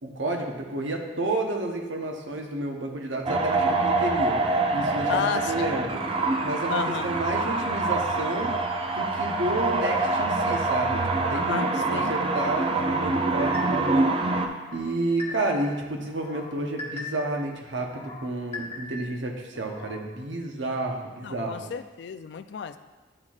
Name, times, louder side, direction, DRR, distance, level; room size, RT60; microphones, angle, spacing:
voice 1, 0.0-4.4 4.7-6.0 6.4-8.6 8.9-14.2 14.7-21.7, right 2 dB, 75° right, 1 dB, 0.9 m, -30 dB
sound 1, 3.3-14.5, right 3 dB, 30° right, 0.4 m, -25 dB
voice 2, 5.1-5.7 6.7-7.1 11.3-12.1 21.2-22.8, left 7 dB, 60° left, 11 dB, 0.3 m, -32 dB
sound 2, 13.4-14.0 14.5-15.7 16.1-17.4 17.8-19.2 19.6-20.1, left 2 dB, 35° left, 1.0 m, -40 dB
11.0 x 4.3 x 2.4 m, 1.2 s
head